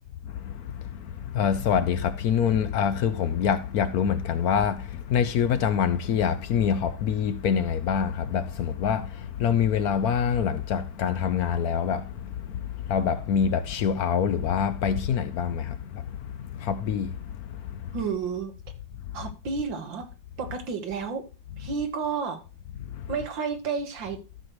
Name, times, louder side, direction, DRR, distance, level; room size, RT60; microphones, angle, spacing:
voice 1, 0.3-17.2 17.7-18.0 22.9-23.2, left 7 dB, 65° left, 1.0 m, -26 dB
voice 2, 17.9-18.5 19.1-20.1 20.4-21.2 21.6-22.4 23.1-24.2, right 5 dB, 90° right, 2.1 m, -31 dB
12.5 x 6.5 x 3.0 m
omnidirectional pair, 2.0 m